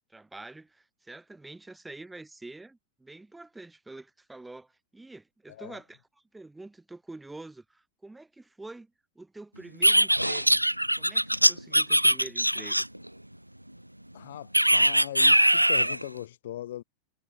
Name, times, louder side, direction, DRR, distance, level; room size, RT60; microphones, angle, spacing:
voice 1, 0.1-6.0 6.3-8.9 9.2-10.6 11.0-12.9, right 2 dB, 5° right, 4.3 m, -46 dB
voice 2, 5.5-5.8 14.1-16.8, left 13 dB, 60° left, 2.8 m, -39 dB
sound 1, 9.8-13.1 14.5-16.0, right 1 dB, 90° right, 1.2 m, -21 dB
figure-of-eight pair, 90°, 0 cm